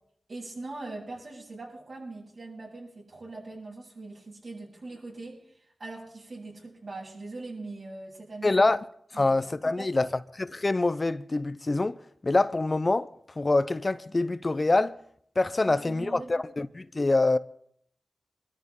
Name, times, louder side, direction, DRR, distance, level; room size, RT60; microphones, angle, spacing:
voice 1, 0.3-5.5 5.8-8.6 9.1-9.4 9.6-10.1 15.6-16.5, right 2 dB, 65° right, 7.9 m, -41 dB
voice 2, 8.4-8.8 9.1-10.1 10.4-12.0 12.2-13.1 13.4-15.0 15.4-17.4, left 2 dB, 40° left, 0.6 m, -25 dB
24.0 x 13.0 x 3.7 m
cardioid pair, 50°, 0 cm